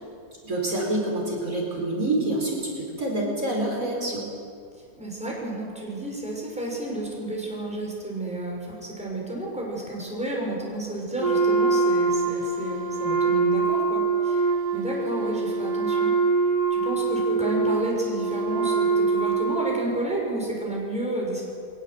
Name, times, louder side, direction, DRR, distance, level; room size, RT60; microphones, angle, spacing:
voice 1, 0.4-4.3, right 1 dB, 60° right, -2 dB, 5.1 m, -27 dB
voice 2, 5.0-16.1 16.7-21.4, right 1 dB, 5° right, -3 dB, 5.7 m, -31 dB
Wind instrument woodwind instrument, 11.2-20.0, right 4 dB, 30° right, 1.4 m, -24 dB
22.5 x 19.0 x 7.7 m, 2.3 s
omnidirectional pair, 1.6 m